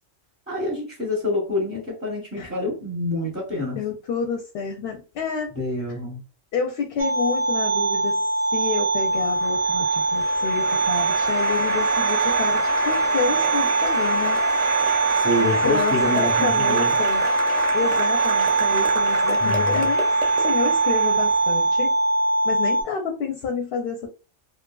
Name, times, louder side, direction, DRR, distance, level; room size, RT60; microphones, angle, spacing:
voice 1, 0.5-3.8 5.5-6.2 15.1-16.9 19.4-19.9, left 1 dB, 10° right, -3 dB, 0.7 m, -27 dB
voice 2, 3.8-5.5 6.5-8.3 8.5-14.4 15.4-17.3 17.7-20.1 20.4-21.9 22.4-24.1, left 5 dB, 65° left, 3 dB, 0.7 m, -29 dB
sound 1, 7.0-22.8, right 2 dB, 50° right, 0.4 m, -22 dB
Applause, 9.1-21.6, right 5 dB, 80° right, 1.0 m, -30 dB
2.9 x 2.5 x 2.2 m, 0.32 s
omnidirectional pair, 1.2 m